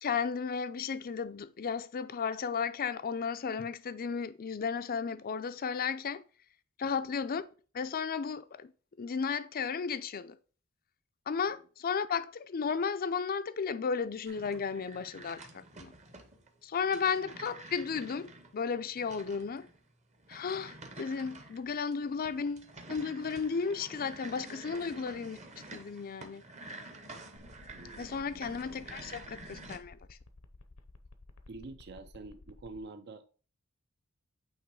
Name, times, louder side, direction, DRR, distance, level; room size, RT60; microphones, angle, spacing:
voice 1, 0.0-6.2 6.8-7.5 7.7-8.7 9.0-10.4 11.3-15.9 16.6-19.7 20.3-25.4 25.7-26.4 28.0-30.2, left 6 dB, 40° left, 0.4 m, -34 dB
voice 2, 6.8-7.1 27.7-28.2 31.5-33.4, right 3 dB, 50° right, 0.5 m, -47 dB
sound 1, 14.3-29.8, right 2 dB, 30° right, 0.9 m, -49 dB
sound 2, 27.4-32.8, left 2 dB, 75° left, 0.7 m, -54 dB
8.8 x 3.0 x 4.7 m
head